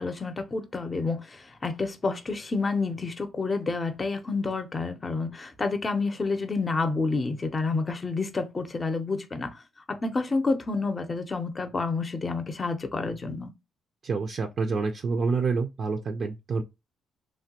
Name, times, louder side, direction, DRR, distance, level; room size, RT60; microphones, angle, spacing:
voice 1, 0.0-9.6 9.9-13.5, left 3 dB, 30° left, 0.6 m, -29 dB
voice 2, 14.0-16.6, right 4 dB, 50° right, 0.4 m, -27 dB
3.3 x 2.2 x 2.8 m
cardioid pair, 90°, 0 cm